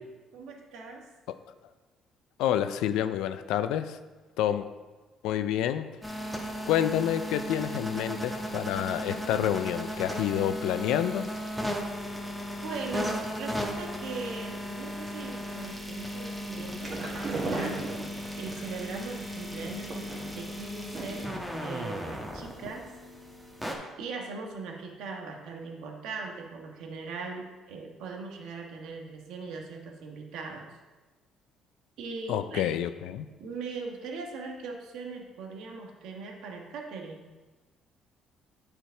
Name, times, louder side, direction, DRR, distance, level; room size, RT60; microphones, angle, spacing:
voice 1, 0.3-1.1 12.6-17.8 18.4-21.3 21.6-22.9 24.0-30.7 32.0-32.7 33.4-37.2, right 4 dB, 80° right, 1 dB, 1.3 m, -40 dB
voice 2, 2.4-4.0 4.4-4.7 5.2-5.9 6.7-11.3 32.3-33.3, left 11 dB, 85° left, 11 dB, 0.4 m, -28 dB
sound 1, 6.0-23.7, equal, 5° right, 1.4 m, -36 dB
sound 2, 16.5-18.6 19.6-20.5 20.9-21.4 21.6-21.7 22.1-22.2, right 2 dB, 40° right, 1.8 m, -35 dB
9.0 x 5.0 x 4.5 m, 1.2 s
cardioid pair, 110°, 0 cm